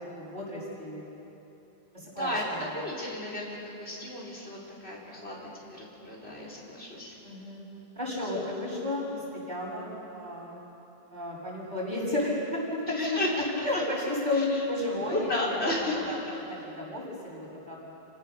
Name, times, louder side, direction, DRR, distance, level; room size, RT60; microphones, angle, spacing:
voice 1, 0.2-1.1 2.0-2.3 7.2-7.7 8.0-9.1 9.3-10.6 11.1-13.2 13.6-15.6 16.1-16.2 16.5-17.9, left 1 dB, 45° right, -6 dB, 7.3 m, -32 dB
voice 2, 2.0-7.2 8.2-8.3 9.1-9.2 12.8-13.8 14.3-14.6 15.0-16.3, left 1 dB, 90° left, -3 dB, 4.5 m, -34 dB
29.0 x 17.0 x 7.0 m, 2.9 s
omnidirectional pair, 1.1 m